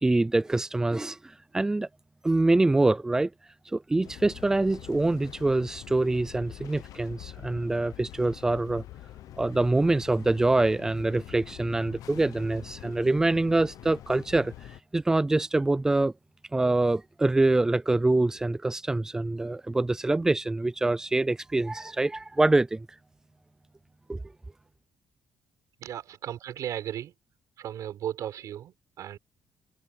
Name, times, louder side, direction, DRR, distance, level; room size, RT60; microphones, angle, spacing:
voice 1, 0.0-1.9 2.2-3.3 3.7-8.8 9.4-14.5 14.9-16.1 16.5-22.9 24.1-24.2, right 2 dB, 10° right, 0.4 m, -25 dB
sound 1, 4.0-14.8, left 13 dB, 65° left, 0.8 m, -45 dB
voice 2, 25.8-27.1 27.6-29.2, right 11 dB, 60° right, 5.0 m, -36 dB
cardioid pair, 165°, 6 cm